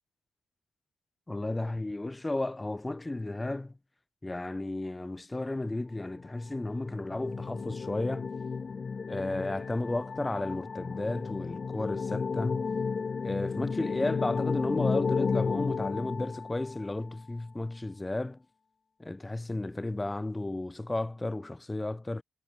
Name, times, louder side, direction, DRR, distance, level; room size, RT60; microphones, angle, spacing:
voice 1, 1.3-3.7 4.2-8.3 9.1-12.7 13.2-18.4 19.0-22.2, left 2 dB, 15° left, 1.2 m, -33 dB
sound 1, 6.2-17.0, left 5 dB, 35° left, 4.6 m, -33 dB
cardioid pair, 100°, 0 cm